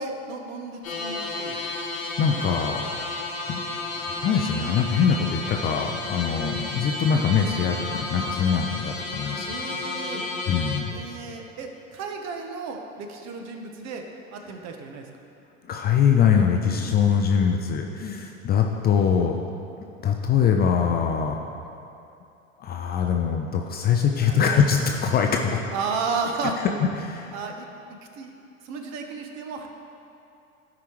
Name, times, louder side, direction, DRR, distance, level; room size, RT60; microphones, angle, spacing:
voice 1, 0.0-1.6 9.5-10.2 10.9-14.1 14.3-15.1 24.3-24.4 25.7-26.6 27.3-27.7 28.2-28.3 28.6-29.7, right 4 dB, 40° right, 4 dB, 1.0 m, -33 dB
sound 1, 0.8-10.8, left 2 dB, 80° left, 1.1 m, -32 dB
voice 2, 1.3-1.8 2.2-2.8 3.5-3.6 4.0-9.5 10.5-10.9 15.7-19.4 20.0-21.4 22.6-25.7 26.6-26.7 27.0-27.4, left 7 dB, 25° left, 3 dB, 0.4 m, -23 dB
13.0 x 4.9 x 3.1 m, 2.7 s
figure-of-eight pair, 80°, 40 cm